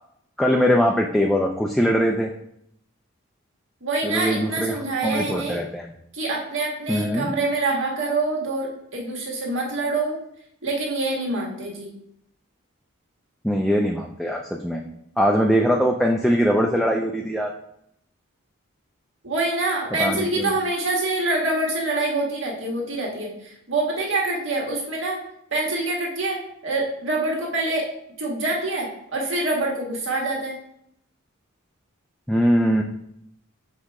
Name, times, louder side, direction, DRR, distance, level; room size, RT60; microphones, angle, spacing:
voice 1, 0.4-2.3 4.0-5.9 6.9-7.3 13.4-14.8 15.2-17.5 20.0-20.6 32.3-32.8, equal, ahead, 1 dB, 0.3 m, -21 dB
voice 2, 3.8-5.6 6.1-10.2 10.6-11.9 19.2-25.2 25.5-27.9 28.2-30.6, right 2 dB, 60° right, -2 dB, 1.6 m, -25 dB
6.3 x 4.9 x 3.6 m, 0.74 s
head